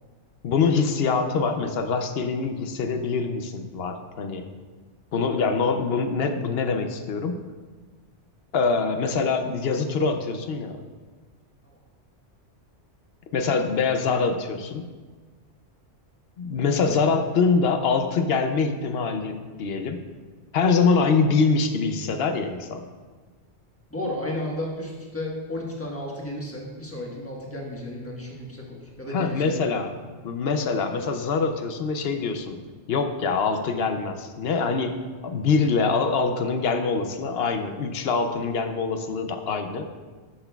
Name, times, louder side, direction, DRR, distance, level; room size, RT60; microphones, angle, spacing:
voice 1, 0.4-4.5 5.1-7.4 8.5-10.8 13.3-14.9 16.4-20.0 20.5-22.9 29.1-29.9 30.2-32.6 32.9-39.8, left 4 dB, 65° left, 7 dB, 0.8 m, -24 dB
voice 2, 23.9-29.7, left 1 dB, 10° left, -3 dB, 1.2 m, -33 dB
13.0 x 5.9 x 2.3 m, 1.4 s
omnidirectional pair, 1.2 m